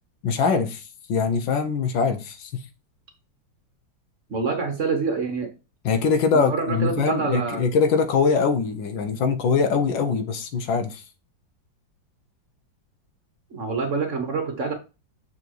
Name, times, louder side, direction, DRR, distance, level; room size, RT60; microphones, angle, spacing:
voice 1, 0.2-0.8 1.1-2.5 5.8-11.0, left 5 dB, 80° left, 1.7 m, -22 dB
voice 2, 4.3-5.5 6.3-7.6 13.5-14.7, right 4 dB, 45° right, 1.3 m, -26 dB
6.8 x 4.4 x 4.6 m
omnidirectional pair, 2.1 m